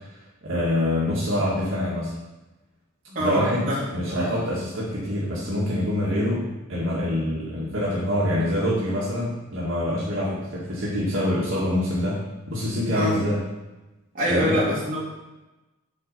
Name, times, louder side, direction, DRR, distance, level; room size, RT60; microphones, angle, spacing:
voice 1, 0.4-2.1 3.2-12.2 12.5-13.4 14.3-14.6, left 1 dB, 70° right, -7 dB, 2.2 m, -25 dB
voice 2, 3.1-4.3 12.9-13.2 14.1-15.0, equal, 40° right, -6 dB, 3.0 m, -25 dB
8.5 x 4.8 x 5.7 m, 1.0 s
head